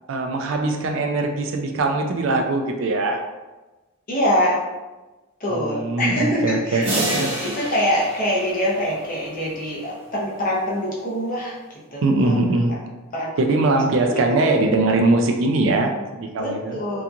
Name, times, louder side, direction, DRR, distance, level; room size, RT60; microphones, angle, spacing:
voice 1, 0.1-3.2 5.5-7.3 12.0-12.7 13.4-16.8, right 2 dB, 60° right, 3 dB, 0.3 m, -21 dB
voice 2, 4.1-4.6 5.4-12.3 12.7-12.8 13.1-13.5 14.0-14.4 16.4-17.0, equal, 40° left, -5 dB, 0.7 m, -25 dB
sound 1, 6.8-9.6, right 1 dB, 25° right, 0.6 m, -29 dB
2.8 x 2.4 x 2.4 m, 1.1 s
head